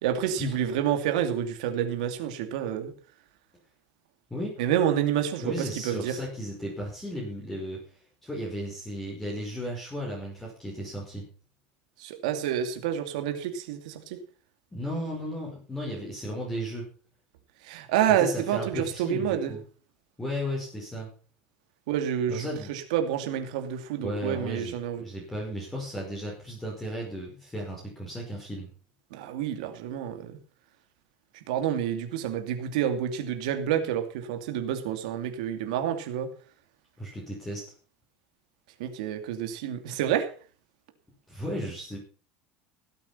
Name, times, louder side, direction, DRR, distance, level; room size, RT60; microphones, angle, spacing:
voice 1, 0.0-2.9 4.6-6.2 12.0-14.2 17.6-19.5 21.9-25.0 29.1-30.4 31.5-36.3 38.8-40.3, right 10 dB, 85° right, 6 dB, 2.7 m, -28 dB
voice 2, 5.4-7.8 8.2-11.2 14.7-16.9 18.1-19.6 20.2-21.1 22.3-22.7 24.0-28.7 37.0-37.6 41.3-42.0, equal, 10° left, -3 dB, 5.2 m, -35 dB
16.5 x 8.7 x 5.7 m, 0.40 s
supercardioid pair, 140°, 4 cm